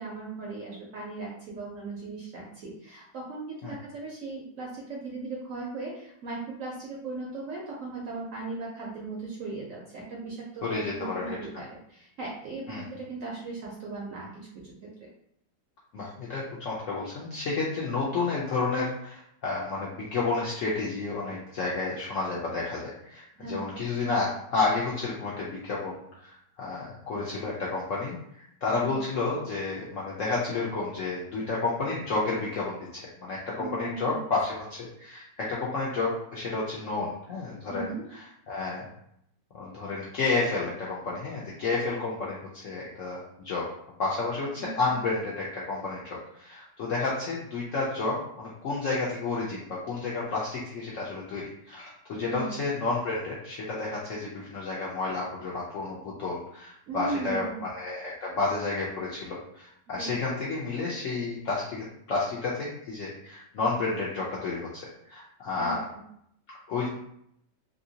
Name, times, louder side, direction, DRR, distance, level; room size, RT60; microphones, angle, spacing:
voice 1, 0.0-15.1 23.3-23.7 28.7-28.9 33.6-34.2 37.7-38.0 44.6-44.9 52.2-52.5 56.9-57.6 60.0-60.1 65.5-66.0, right 3 dB, 65° right, -3 dB, 0.8 m, -38 dB
voice 2, 10.6-11.6 12.7-12.8 15.9-38.9 39.5-43.7 44.0-57.5 57.7-65.8 66.5-66.9, left 3 dB, 70° left, -5 dB, 0.7 m, -31 dB
2.9 x 2.7 x 2.7 m, 0.73 s
omnidirectional pair, 1.9 m